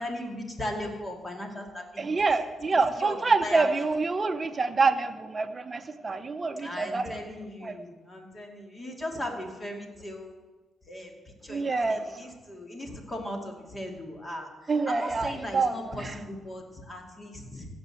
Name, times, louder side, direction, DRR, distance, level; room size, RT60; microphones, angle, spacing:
voice 1, 0.0-2.4 3.0-3.2 3.4-3.9 6.6-10.4 10.9-11.2 11.4-17.7, left 1 dB, 20° left, 2 dB, 2.4 m, -38 dB
voice 2, 2.0-7.2 7.6-7.8 11.5-12.1 14.7-16.2, right 4 dB, 30° right, 8 dB, 0.9 m, -27 dB
16.0 x 5.4 x 7.8 m, 1.2 s
cardioid pair, 90°, 0 cm